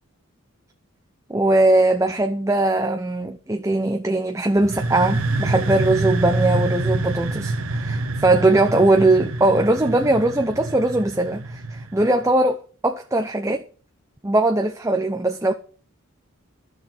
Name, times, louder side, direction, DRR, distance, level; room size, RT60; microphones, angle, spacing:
voice 1, 1.3-13.6 14.2-15.5, right 2 dB, 15° right, 0.7 m, -20 dB
sound 1, 4.6-12.2, right 2 dB, 85° right, 1.3 m, -26 dB
12.5 x 6.6 x 7.7 m
head